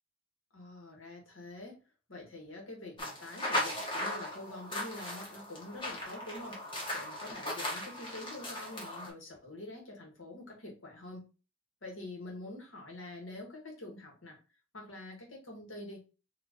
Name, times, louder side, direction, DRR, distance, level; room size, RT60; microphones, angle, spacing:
voice 1, 0.5-1.8 2.1-11.3 11.8-14.4 14.7-16.1, left 2 dB, 80° left, 0 dB, 1.8 m, -46 dB
sound 1, 3.0-9.1, left 1 dB, 25° left, 1.5 m, -37 dB
4.4 x 3.1 x 3.1 m, 0.31 s
head